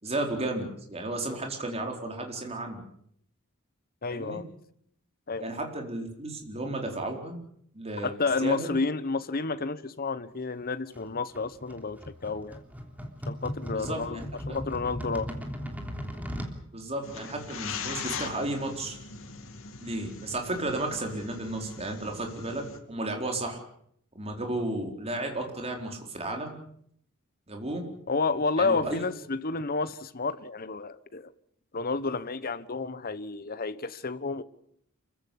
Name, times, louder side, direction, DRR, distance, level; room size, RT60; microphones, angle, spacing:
voice 1, 0.0-2.8 4.1-4.4 5.4-7.4 7.7-8.1 8.4-8.7 13.7-14.6 16.7-19.0 19.8-22.6 22.9-23.6 24.1-26.5 27.5-27.8 28.6-29.0, right 2 dB, 30° right, 4.4 m, -33 dB
voice 2, 4.0-4.4 5.3-5.5 8.0-12.6 13.3-15.3 28.1-31.3 31.7-34.4, left 4 dB, 45° left, 1.1 m, -30 dB
sound 1, 10.9-16.6, equal, 10° right, 3.2 m, -37 dB
sound 2, 17.0-22.8, left 5 dB, 65° left, 2.6 m, -40 dB
27.0 x 15.5 x 8.7 m
head